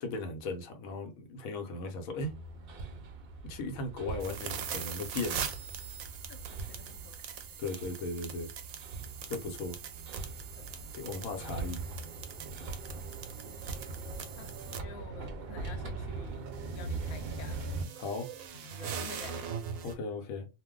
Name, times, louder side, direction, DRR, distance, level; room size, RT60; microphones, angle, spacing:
voice 1, 0.0-2.3 3.4-5.5 7.6-8.5 9.3-9.8 10.9-11.8 18.0-18.3 19.8-20.5, left 3 dB, 85° left, 1.1 m, -37 dB
Hammer, 2.2-17.8, right 3 dB, 55° right, 0.7 m, -41 dB
sound 1, 4.2-14.8 16.3-19.9, right 7 dB, 85° right, 1.0 m, -42 dB
voice 2, 6.3-7.6 10.6-10.9 14.4-17.7 18.5-19.6, left 5 dB, 65° left, 0.7 m, -50 dB
2.5 x 2.1 x 3.6 m
omnidirectional pair, 1.4 m